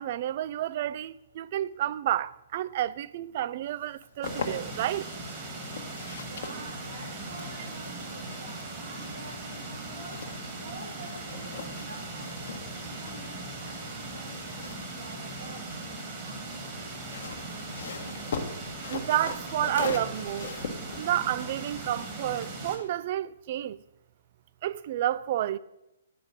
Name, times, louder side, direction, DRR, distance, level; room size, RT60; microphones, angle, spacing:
voice 1, 0.0-5.1 18.9-20.6 21.0-23.8 24.6-25.6, right 12 dB, 40° right, 0.3 m, -30 dB
sound 1, 3.8-5.0 5.5-10.9 11.2-15.9 16.9-22.4, left 5 dB, 50° left, 1.0 m, -41 dB
sound 2, 4.2-22.8, right 2 dB, 25° right, 1.8 m, -39 dB
voice 2, 6.3-15.8, right 2 dB, 65° right, 2.2 m, -47 dB
8.8 x 5.0 x 6.3 m
figure-of-eight pair, 125°, 0 cm